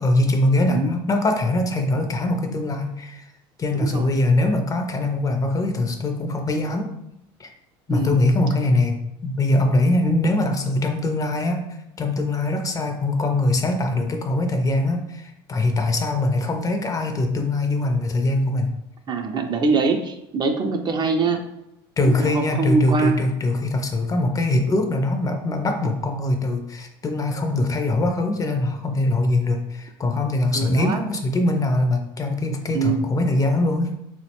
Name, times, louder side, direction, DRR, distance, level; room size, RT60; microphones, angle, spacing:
voice 1, 0.0-3.2 3.6-6.9 7.4-7.5 7.9-11.6 12.0-18.7 22.0-33.9, left 2 dB, 25° left, 5 dB, 0.5 m, -22 dB
voice 2, 3.7-4.1 7.9-8.2 19.1-21.4 22.2-23.3 30.5-31.0 32.7-33.1, right 4 dB, 35° right, 5 dB, 0.4 m, -23 dB
3.7 x 2.1 x 2.8 m, 0.82 s
supercardioid pair, 90°, 13 cm